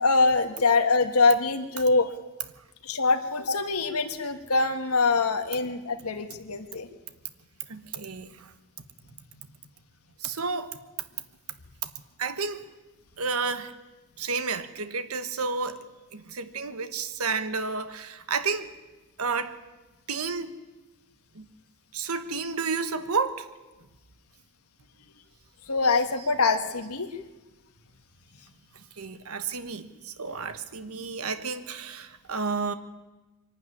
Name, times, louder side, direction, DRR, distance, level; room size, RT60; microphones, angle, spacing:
voice 1, 0.0-2.1 2.8-6.9 25.7-27.1, left 3 dB, 80° left, 7 dB, 1.5 m, -24 dB
voice 2, 7.7-8.5 10.2-10.8 11.8-11.9 12.2-12.6 13.2-13.7 14.2-15.8 16.1-18.7 19.2-19.6 20.1-20.5 21.3-21.5 21.9-23.5 29.0-32.7, right 4 dB, 80° right, 11 dB, 1.3 m, -31 dB
23.0 x 12.0 x 9.9 m, 1.2 s
head